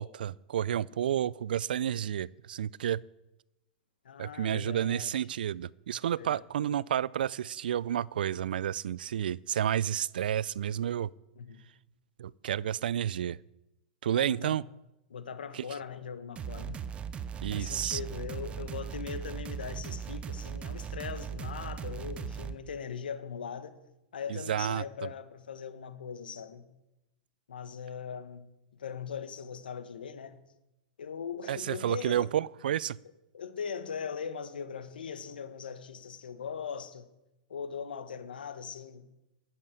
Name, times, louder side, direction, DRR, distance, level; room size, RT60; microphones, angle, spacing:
voice 1, 0.0-3.0 4.2-11.1 12.2-13.4 14.0-14.6 15.5-15.6 17.4-18.0 24.3-25.1 31.5-33.0, right 10 dB, 80° right, 0.4 m, -31 dB
voice 2, 4.0-5.2 6.2-6.4 11.4-11.6 14.2-14.6 15.1-16.8 17.5-23.8 24.1-26.7 27.5-28.4 28.7-30.4 31.0-32.3 33.3-37.1 37.5-39.1, left 6 dB, 85° left, 1.4 m, -40 dB
sound 1, 16.4-22.6, right 7 dB, 25° right, 0.8 m, -38 dB
11.5 x 7.8 x 8.2 m
hypercardioid pair, 120°, 5 cm